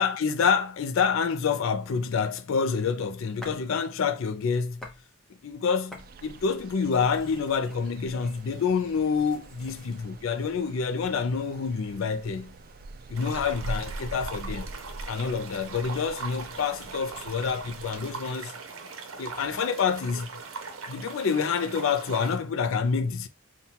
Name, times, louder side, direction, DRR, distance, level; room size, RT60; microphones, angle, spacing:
voice 1, 0.0-4.8 5.4-12.5 13.1-14.7 15.1-18.5 19.2-20.3 20.9-23.3, left 6 dB, 65° left, 0.4 m, -27 dB
sound 1, 3.4-3.7 4.1-5.0 5.4-10.0, left 1 dB, 5° left, 0.7 m, -50 dB
sound 2, 6.0-18.1, right 2 dB, 45° right, 0.3 m, -43 dB
sound 3, 13.2-22.4, right 4 dB, 65° right, 0.7 m, -40 dB
5.4 x 2.3 x 2.8 m
head